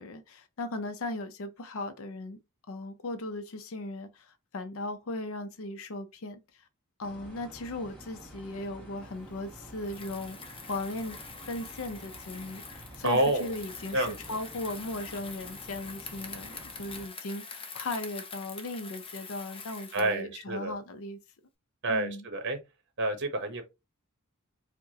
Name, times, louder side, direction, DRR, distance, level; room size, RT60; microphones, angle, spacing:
voice 1, 0.0-2.4 2.7-6.4 7.0-10.4 10.7-11.2 11.5-21.2 21.9-22.3, left 2 dB, 70° left, 0.5 m, -37 dB
sound 1, 7.0-17.1, right 1 dB, 5° left, 1.2 m, -50 dB
Bicycle, 9.7-20.2, left 5 dB, 25° left, 0.6 m, -45 dB
voice 2, 13.0-13.5 13.9-14.4 19.9-20.8 21.8-22.6 23.0-23.6, right 2 dB, 55° right, 0.9 m, -28 dB
4.6 x 2.1 x 2.7 m
head